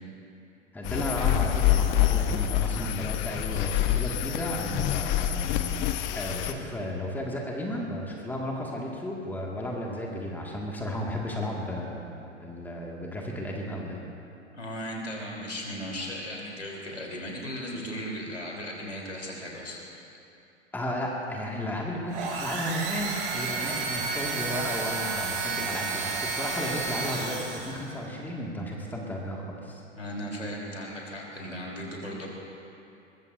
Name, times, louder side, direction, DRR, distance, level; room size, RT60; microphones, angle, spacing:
voice 1, 0.7-5.7 6.1-14.0 20.7-29.8, equal, 5° left, -2 dB, 2.2 m, -34 dB
sound 1, 0.8-6.5, left 12 dB, 30° left, 0.9 m, -26 dB
voice 2, 14.5-19.8 30.0-32.3, equal, 80° left, -2 dB, 4.0 m, -36 dB
sound 2, 22.1-27.9, right 4 dB, 50° right, 4.5 m, -31 dB
23.0 x 22.0 x 2.8 m, 2.7 s
figure-of-eight pair, 90°, 36 cm